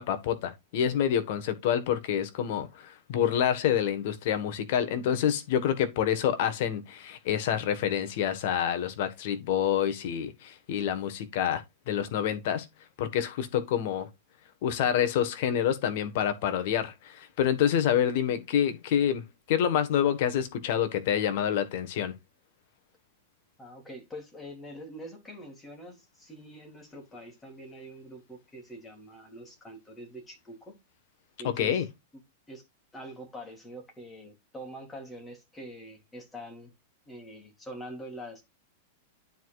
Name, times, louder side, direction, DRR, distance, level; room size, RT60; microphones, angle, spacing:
voice 1, 0.0-12.7 13.0-14.1 14.6-19.2 19.5-22.1 31.4-31.8, left 9 dB, 60° left, 1.3 m, -27 dB
voice 2, 23.6-30.8 31.4-31.8 32.5-32.6 32.9-36.7 37.1-38.4, equal, 10° left, 2.9 m, -44 dB
12.0 x 4.8 x 2.4 m
supercardioid pair, 145°, 0 cm